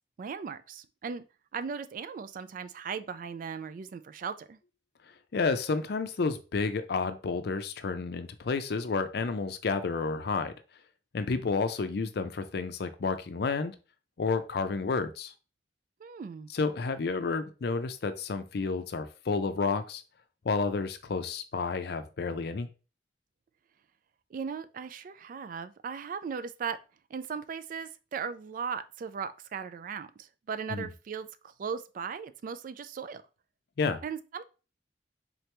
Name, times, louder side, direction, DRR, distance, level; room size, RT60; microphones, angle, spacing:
voice 1, 0.2-1.2 1.5-4.6 16.0-16.5 24.3-26.8 27.1-33.2 34.0-34.4, right 6 dB, 50° right, 0.3 m, -37 dB
voice 2, 5.3-10.5 11.1-13.8 14.2-15.3 16.5-20.0 20.4-22.7 30.7-30.9 33.8-34.0, left 4 dB, 65° left, 0.5 m, -30 dB
3.8 x 3.0 x 3.3 m
head